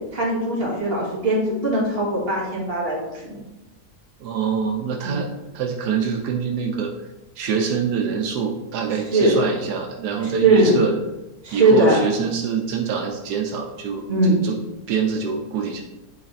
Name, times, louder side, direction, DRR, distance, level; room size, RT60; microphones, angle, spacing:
voice 1, 0.1-3.5 5.0-5.2 9.1-9.3 10.2-10.8 11.4-12.0 14.1-14.4, right 2 dB, 40° right, -5 dB, 2.1 m, -20 dB
voice 2, 4.2-5.3 5.5-6.9 7.4-11.0 11.5-14.6 14.9-15.8, right 6 dB, 85° right, 2 dB, 1.3 m, -25 dB
9.3 x 3.3 x 4.1 m, 1.0 s
omnidirectional pair, 1.7 m